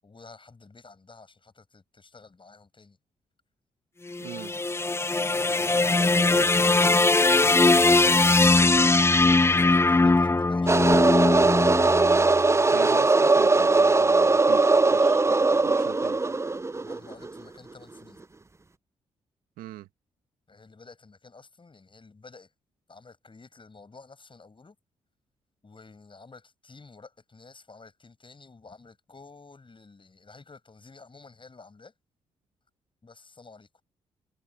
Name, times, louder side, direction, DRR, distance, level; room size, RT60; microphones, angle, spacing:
voice 1, 0.0-3.0 8.4-11.0 15.5-15.8 16.8-18.2 20.5-22.5 22.9-24.8 25.6-31.9 33.0-33.8, left 4 dB, 35° left, 7.5 m, -51 dB
sound 1, 4.1-12.4, left 3 dB, 15° left, 0.6 m, -21 dB
voice 2, 4.2-4.5 12.7-16.2 19.6-19.9, right 14 dB, 80° right, 1.9 m, -41 dB
sound 2, 10.7-17.3, right 3 dB, 20° right, 0.6 m, -20 dB
hypercardioid pair, 45°, 15 cm